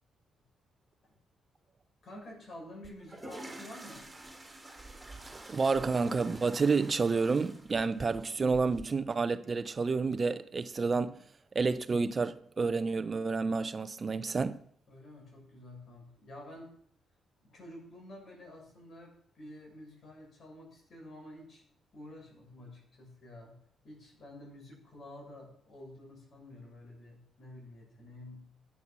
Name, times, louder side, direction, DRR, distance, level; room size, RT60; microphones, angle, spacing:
voice 1, 2.0-4.1 14.9-16.7 17.4-21.6 21.9-28.5, left 1 dB, 55° left, 7.1 m, -50 dB
sound 1, 2.8-8.8, right 2 dB, 15° right, 3.3 m, -48 dB
voice 2, 5.3-11.2 11.5-14.6, right 4 dB, 40° right, 0.7 m, -30 dB
14.5 x 8.5 x 6.0 m
supercardioid pair, 65°, 0 cm